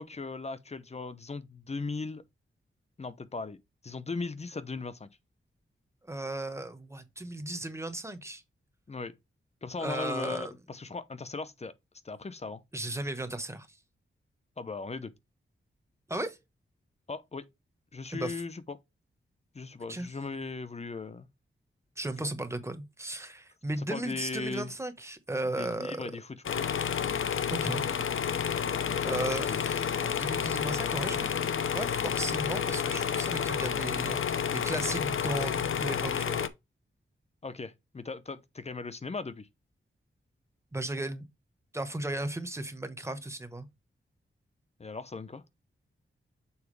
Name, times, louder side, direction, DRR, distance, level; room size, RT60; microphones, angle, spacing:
voice 1, 0.0-2.2 3.0-3.6 3.8-5.1 8.9-9.1 9.6-11.7 12.0-12.6 14.6-15.1 17.1-17.5 17.9-18.8 19.5-21.3 22.2-22.3 23.8-24.7 25.6-26.4 28.9-29.6 37.4-39.5 44.8-45.4, left 4 dB, 30° left, 0.7 m, -38 dB
voice 2, 6.0-8.4 9.8-10.5 12.7-13.8 16.1-16.4 18.1-18.4 19.9-20.1 22.0-26.0 27.5-27.9 29.0-31.3 31.7-34.2 34.5-36.4 40.7-41.2 41.7-43.7, right 1 dB, 15° right, 1.1 m, -35 dB
sound 1, 26.4-36.5, left 7 dB, 75° left, 0.7 m, -30 dB
7.1 x 4.6 x 3.2 m
wide cardioid pair, 135°, 21 cm